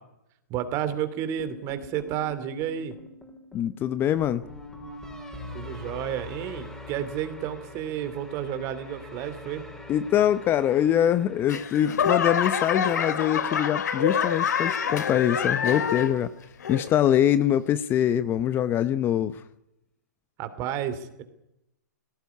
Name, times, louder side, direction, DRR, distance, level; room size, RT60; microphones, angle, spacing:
voice 1, 0.5-2.9 5.5-9.6 20.4-21.2, right 10 dB, 30° right, 11 dB, 2.8 m, -31 dB
sound 1, 1.4-13.6, left 2 dB, 5° left, 4.3 m, -44 dB
voice 2, 3.5-4.4 9.9-16.3 16.7-19.4, left 10 dB, 20° left, 14 dB, 0.8 m, -23 dB
Laughter / Clapping / Crowd, 11.5-16.3 16.6-17.1 17.7-17.8, left 7 dB, 70° left, 2.7 m, -26 dB
19.0 x 17.5 x 9.5 m, 0.86 s
hypercardioid pair, 135°, 10 cm